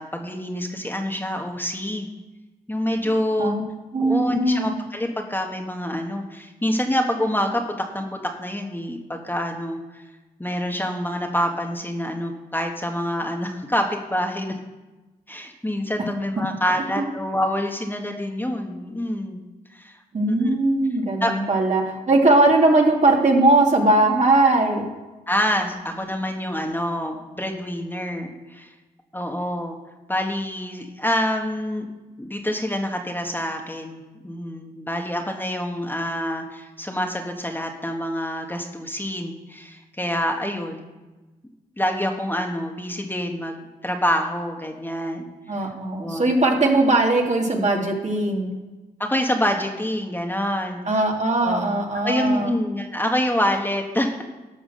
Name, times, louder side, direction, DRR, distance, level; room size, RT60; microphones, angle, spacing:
voice 1, 0.0-2.1 2.7-3.6 4.0-10.0 10.4-14.5 15.3-19.4 19.7-20.0 20.3-20.5 21.2-21.3 25.3-28.7 29.1-29.8 30.1-31.9 32.2-40.9 41.8-45.6 46.0-46.3 49.0-50.8 51.4-51.8 52.0-54.2, equal, 10° left, 2 dB, 1.6 m, -26 dB
voice 2, 3.9-4.7 17.0-17.1 20.1-24.9 45.5-48.5 50.8-52.5, right 2 dB, 45° right, 0 dB, 2.6 m, -19 dB
12.0 x 6.0 x 6.4 m, 1.2 s
supercardioid pair, 45°, 17 cm